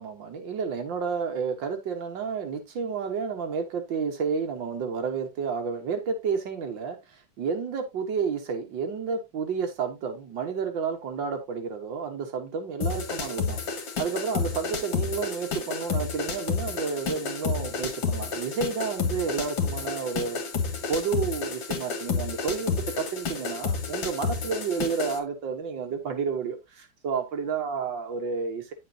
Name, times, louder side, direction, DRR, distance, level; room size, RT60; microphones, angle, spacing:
voice 1, 0.0-20.4 20.9-28.7, right 5 dB, 80° right, 2.0 m, -31 dB
sound 1, 12.8-25.2, left 5 dB, 80° left, 2.4 m, -30 dB
9.8 x 6.7 x 2.7 m
omnidirectional pair, 2.0 m